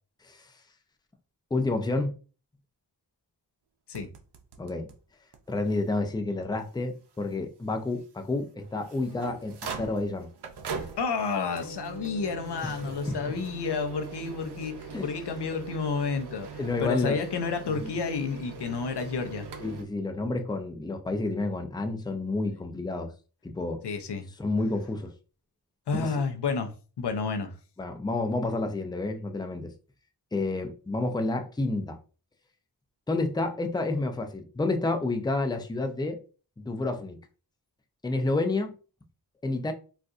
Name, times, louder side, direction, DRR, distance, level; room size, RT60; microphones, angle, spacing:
voice 1, 1.5-2.1 4.6-4.9 5.5-10.3 12.6-12.7 13.1-13.2 14.9-15.2 16.6-17.2 17.8-17.9 19.6-23.1 23.4-23.8 24.4-25.1 25.9-26.1 27.8-29.7 30.3-32.0 33.1-36.2 36.6-37.2 38.0-38.7 39.4-39.7, left 2 dB, 10° left, 0.5 m, -29 dB
sound 1, 3.9-5.0 5.3-5.4 5.7-5.8 6.4-6.5 8.6-19.8, right 4 dB, 80° right, 0.6 m, -41 dB
voice 2, 11.0-19.5 23.8-24.3 25.9-27.5, left 5 dB, 90° left, 0.6 m, -30 dB
3.9 x 2.4 x 2.4 m
cardioid pair, 55°, 39 cm